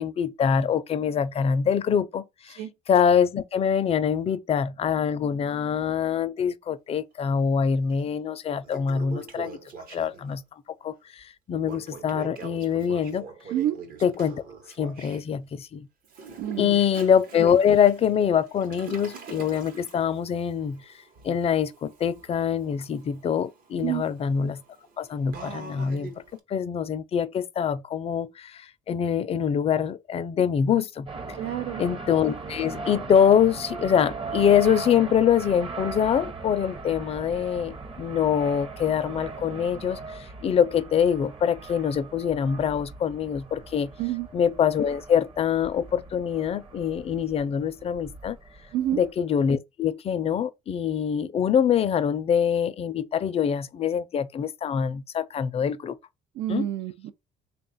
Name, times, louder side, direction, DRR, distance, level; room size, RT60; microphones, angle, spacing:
voice 1, 0.0-2.6 2.9-9.6 9.9-10.4 10.8-13.3 14.0-14.4 14.8-15.9 16.6-20.8 21.2-24.6 25.0-26.1 26.5-31.1 31.8-43.9 44.3-48.4 48.9-56.0 56.5-56.7, left 8 dB, 35° left, 0.4 m, -24 dB
Toilet flush, 7.9-8.0 8.5-10.4 11.6-15.2 16.1-26.4, right 5 dB, 60° right, 0.9 m, -44 dB
voice 2, 16.4-16.8 23.8-24.0 31.3-31.8 44.0-44.3 48.7-49.0 56.4-57.1, right 12 dB, 80° right, 0.5 m, -28 dB
sound 1, 31.1-49.1, right 4 dB, 30° right, 0.7 m, -39 dB
3.4 x 2.3 x 4.0 m
cardioid pair, 110°, 17 cm